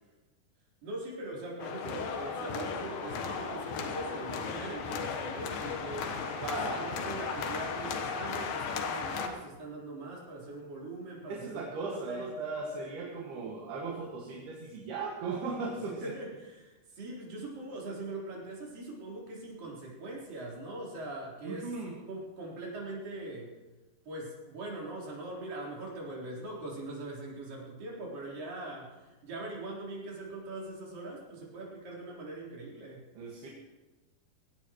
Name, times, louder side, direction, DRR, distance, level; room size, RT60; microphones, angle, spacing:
voice 1, 0.8-6.2 6.5-12.4 16.0-23.5 24.1-33.0, right 2 dB, 60° right, -4 dB, 5.7 m, -41 dB
sound 1, 1.6-9.3, left 5 dB, 70° left, 3.0 m, -36 dB
voice 2, 6.4-6.8 11.3-16.1 21.4-22.0 33.2-33.5, right 4 dB, 75° right, -2 dB, 3.8 m, -37 dB
22.0 x 17.5 x 3.1 m, 1.1 s
omnidirectional pair, 4.6 m